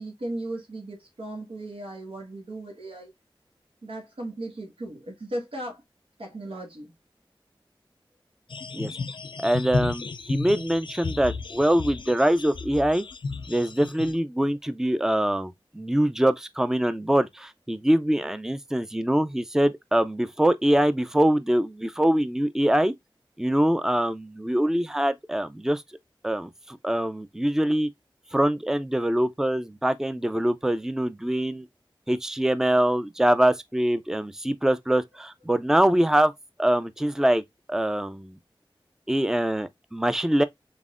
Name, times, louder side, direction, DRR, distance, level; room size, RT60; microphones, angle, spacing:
voice 1, 0.0-3.1 3.8-5.8 6.2-6.9, right 1 dB, 85° right, 1.6 m, -36 dB
sound 1, 8.5-14.2, left 4 dB, 65° left, 0.4 m, -33 dB
voice 2, 9.4-13.0 13.5-22.9 23.4-25.8 26.2-27.9 28.3-31.7 32.1-36.3 36.6-37.4 37.7-38.4 39.1-40.4, right 1 dB, 5° right, 0.4 m, -24 dB
3.9 x 3.5 x 2.4 m
wide cardioid pair, 70°, 9 cm